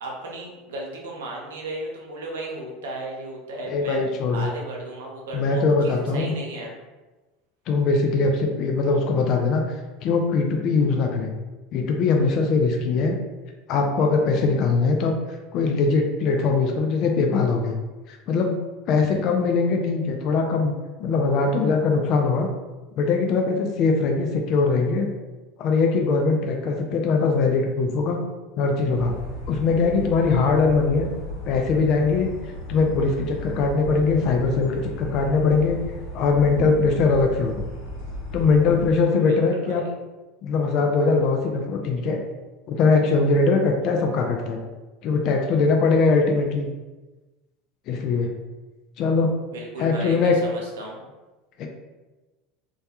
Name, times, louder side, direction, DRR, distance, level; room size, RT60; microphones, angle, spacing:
voice 1, 0.0-4.0 4.3-6.7 39.2-39.9 49.5-51.0, right 1 dB, 85° right, -1 dB, 0.6 m, -35 dB
voice 2, 3.7-4.5 5.3-6.3 7.7-9.6 10.0-11.3 11.7-13.2 13.7-15.1 15.5-17.8 18.1-18.5 18.9-20.7 21.0-22.5 23.0-25.1 25.6-28.2 28.6-29.1 29.5-31.1 31.5-32.3 32.7-35.8 36.1-37.6 38.3-39.8 40.4-42.2 42.7-44.6 45.0-46.7 47.9-48.3 49.0-49.3 49.8-50.3 51.6-51.7, left 4 dB, 55° left, 3 dB, 0.3 m, -21 dB
sound 1, 28.9-38.9, equal, 80° left, 0.8 m, -35 dB
2.2 x 2.1 x 2.8 m, 1.2 s
hypercardioid pair, 95°, 0 cm